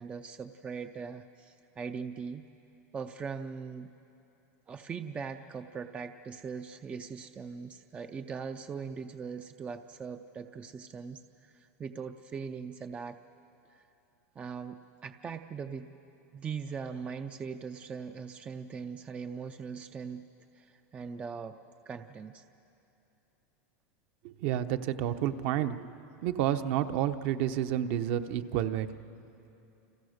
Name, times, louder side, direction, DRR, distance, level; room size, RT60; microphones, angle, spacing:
voice 1, 0.0-2.4 2.9-3.9 4.7-13.2 13.7-13.8 14.4-15.9 16.3-20.2 20.5-21.6 21.9-22.4, right 6 dB, 15° right, 8 dB, 0.5 m, -40 dB
voice 2, 24.2-25.9 26.2-28.9, right 11 dB, 50° right, 9 dB, 0.9 m, -30 dB
30.0 x 27.0 x 6.6 m, 2.8 s
supercardioid pair, 165°, 9 cm